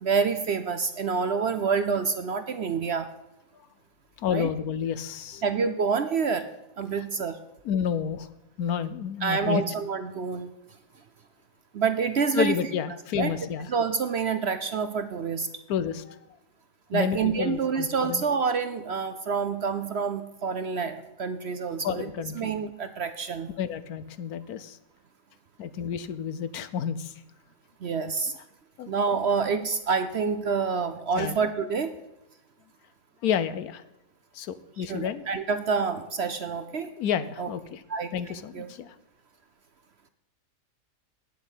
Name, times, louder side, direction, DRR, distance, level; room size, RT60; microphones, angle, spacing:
voice 1, 0.0-3.1 4.3-4.5 5.4-6.5 6.8-7.4 9.2-10.5 11.7-12.6 13.2-13.3 13.7-15.5 16.9-22.1 22.4-23.5 27.8-28.3 28.9-31.9 34.8-36.9 37.4-37.5 37.9-38.1 38.5-38.7, right 5 dB, 55° right, 10 dB, 0.7 m, -27 dB
voice 2, 4.2-5.4 7.0-7.1 7.6-8.3 8.6-9.6 12.3-13.7 15.7-16.2 16.9-18.2 21.8-22.5 23.6-24.8 25.6-27.1 28.8-28.9 31.1-31.4 33.2-33.8 34.3-35.2 37.0-37.8 38.1-38.9, left 8 dB, 70° left, 14 dB, 1.2 m, -30 dB
9.7 x 7.7 x 8.2 m, 0.90 s
omnidirectional pair, 1.7 m